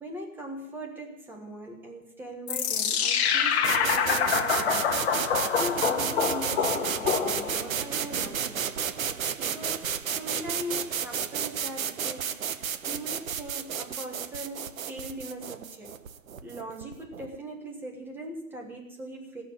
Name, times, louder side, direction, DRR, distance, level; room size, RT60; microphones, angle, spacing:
voice 1, 0.0-4.9 5.2-8.8 9.4-12.4 12.8-15.9 16.4-19.4, equal, 5° right, 1 dB, 1.3 m, -40 dB
sound 1, 2.5-7.8, left 7 dB, 45° left, 1.4 m, -26 dB
sound 2, 3.6-17.4, right 8 dB, 65° right, 1.1 m, -32 dB
17.5 x 6.9 x 8.7 m, 0.91 s
hypercardioid pair, 150°, 45 cm